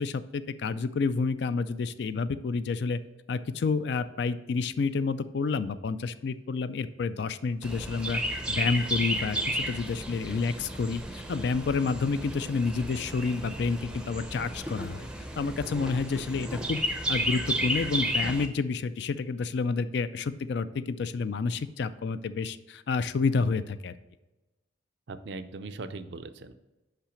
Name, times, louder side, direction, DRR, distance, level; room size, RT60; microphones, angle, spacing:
voice 1, 0.0-3.0 3.3-8.2 8.5-15.1 15.4-16.8 17.1-23.9, left 4 dB, 60° left, 14 dB, 0.3 m, -29 dB
Chirp tweet, 7.6-18.5, equal, 5° right, 0.5 m, -33 dB
voice 2, 25.1-26.5, right 3 dB, 60° right, 10 dB, 0.5 m, -39 dB
5.7 x 5.7 x 5.1 m, 1.1 s
head